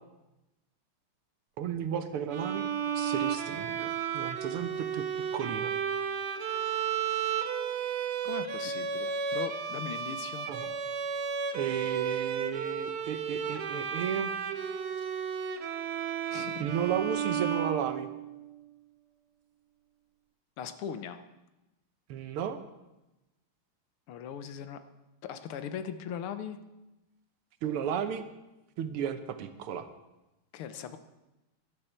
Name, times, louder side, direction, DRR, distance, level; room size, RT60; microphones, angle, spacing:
voice 1, 1.6-2.7 3.0-5.0 5.3-5.7 10.5-10.7 11.5-14.3 16.6-18.1 22.1-22.6 27.6-28.2 28.8-29.9, right 8 dB, 85° right, 9 dB, 1.8 m, -34 dB
Bowed string instrument, 2.3-18.4, right 7 dB, 60° right, 1.1 m, -33 dB
voice 2, 8.2-10.5 16.3-16.7 20.6-21.2 24.1-24.8 25.2-26.6 30.5-31.0, left 8 dB, 80° left, 10 dB, 1.7 m, -39 dB
18.0 x 11.5 x 4.4 m, 1.0 s
omnidirectional pair, 2.4 m